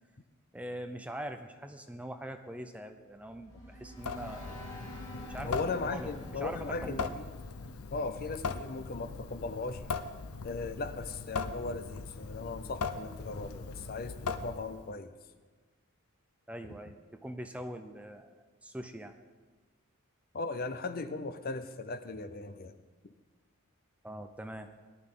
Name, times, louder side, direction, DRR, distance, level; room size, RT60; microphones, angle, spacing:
voice 1, 0.5-4.7 5.2-5.6 5.9-7.2 16.5-19.1 24.0-24.7, equal, 5° right, 7 dB, 0.5 m, -43 dB
sound 1, 3.0-8.2, equal, 15° left, 3.5 m, -50 dB
Water tap faucet / Sink (filling or washing) / Drip, 4.0-14.9, left 4 dB, 85° left, 0.7 m, -40 dB
voice 2, 5.4-7.3 7.9-9.8 10.4-15.1 20.3-22.7, left 3 dB, 45° left, 11 dB, 0.6 m, -37 dB
18.0 x 11.5 x 3.8 m, 1.4 s
head